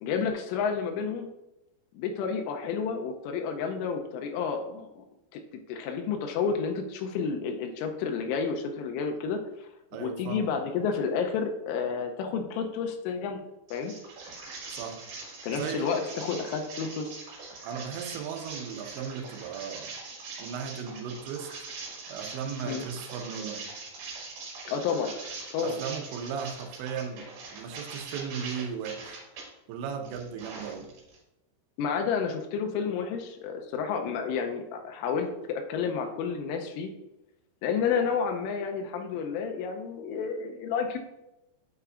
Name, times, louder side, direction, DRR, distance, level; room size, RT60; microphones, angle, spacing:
voice 1, 0.0-1.3 1.9-5.1 5.3-5.4 5.7-9.7 10.0-13.4 13.7-13.9 15.4-17.1 22.6-22.8 24.7-25.2 25.5-25.8 31.8-36.9 37.6-41.0, left 6 dB, 90° left, 4 dB, 3.2 m, -30 dB
voice 2, 9.9-10.5 14.7-15.0 15.5-15.9 17.6-19.9 20.4-21.5 22.1-23.7 25.6-29.2 29.7-30.9, right 7 dB, 80° right, 5 dB, 2.9 m, -36 dB
sound 1, 13.7-29.4 29.9-31.2, right 3 dB, 60° right, 2.7 m, -42 dB
8.7 x 6.8 x 2.5 m, 0.92 s
omnidirectional pair, 5.5 m